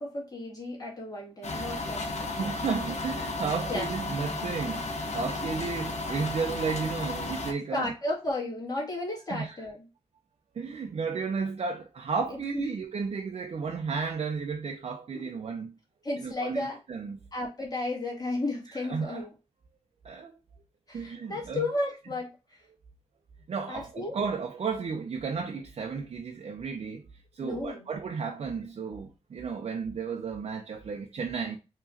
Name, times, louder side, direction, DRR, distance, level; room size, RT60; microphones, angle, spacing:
voice 1, 0.0-2.3 3.7-3.9 7.7-9.9 12.3-12.7 15.1-15.2 16.0-16.8 17.3-19.3 20.9-22.6 23.7-24.2 27.4-27.9, left 2 dB, 35° left, 2.1 m, -34 dB
sound 1, 1.4-7.5, left 2 dB, 80° left, 0.9 m, -34 dB
voice 2, 2.3-7.9 9.3-9.6 10.5-15.7 16.2-17.2 18.9-19.2 20.0-20.3 20.9-21.6 23.5-27.0 27.3-31.6, right 5 dB, 65° right, 0.6 m, -33 dB
4.7 x 3.1 x 2.6 m
wide cardioid pair, 155°, 11 cm